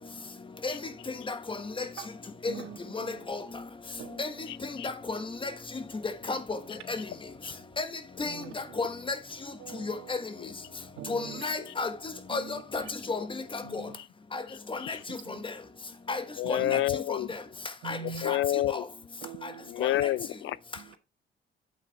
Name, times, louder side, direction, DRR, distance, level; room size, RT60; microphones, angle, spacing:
voice 1, 2.5-3.3 4.0-4.5 8.2-8.9 9.6-10.2 10.9-11.4 12.3-13.0 13.6-14.0 15.1-15.4 16.4-16.8 17.8-18.5 19.2-19.7 20.7-21.0, right 9 dB, 85° right, 1.5 m, -44 dB
voice 2, 4.8-5.5 6.3-6.4 6.9-7.0 7.8-7.9 8.2-8.3 8.8-8.9 11.1-11.9 12.3-12.8 13.1-13.2 13.7-13.8 16.1-16.2 16.5-16.6 17.9-18.0 18.2-18.4, left 3 dB, 25° left, 1.3 m, -31 dB
voice 3, 16.4-17.3 18.2-18.8 19.7-20.6, left 14 dB, 75° left, 0.4 m, -28 dB
8.4 x 7.8 x 3.2 m
cardioid pair, 90°, 20 cm